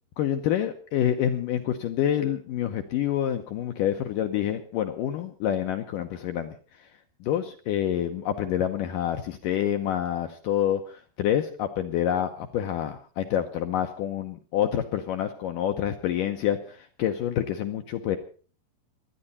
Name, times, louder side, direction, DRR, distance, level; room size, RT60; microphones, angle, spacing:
voice 1, 0.2-6.6 7.2-18.2, left 10 dB, 75° left, 6 dB, 2.0 m, -27 dB
27.5 x 10.0 x 4.2 m, 0.39 s
omnidirectional pair, 4.9 m